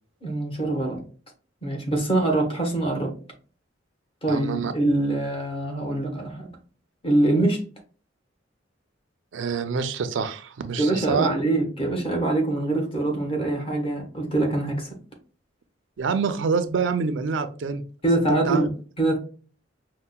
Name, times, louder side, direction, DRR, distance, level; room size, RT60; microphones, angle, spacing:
voice 1, 0.2-1.0 1.6-3.1 4.2-6.5 7.0-7.6 10.8-14.9 18.0-19.2, right 2 dB, 30° left, 2 dB, 0.9 m, -24 dB
voice 2, 4.3-4.7 9.3-11.3 16.0-17.8 18.5-18.7, right 5 dB, 70° right, 10 dB, 0.4 m, -26 dB
5.4 x 2.1 x 2.2 m, 0.40 s
head